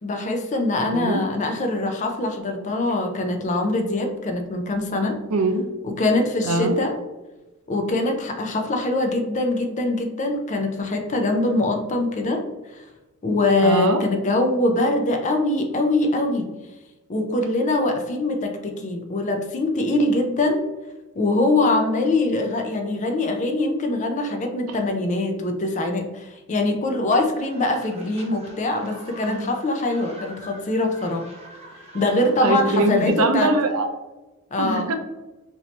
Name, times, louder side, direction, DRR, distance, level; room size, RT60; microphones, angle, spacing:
voice 1, 0.0-5.2 5.8-6.9 7.7-12.4 12.7-12.8 13.2-16.5 17.1-20.6 21.2-31.3 31.9-33.5 34.5-34.9, left 2 dB, 35° left, 4 dB, 0.4 m, -23 dB
voice 2, 0.9-1.2 5.3-5.7 6.4-6.8 13.6-14.0 24.7-24.9 29.2-29.5 32.4-33.9 34.6-34.9, right 2 dB, 70° right, 6 dB, 0.4 m, -22 dB
sound 1, 27.4-33.1, right 1 dB, 30° right, 0.6 m, -44 dB
2.8 x 2.7 x 3.1 m, 1.1 s
head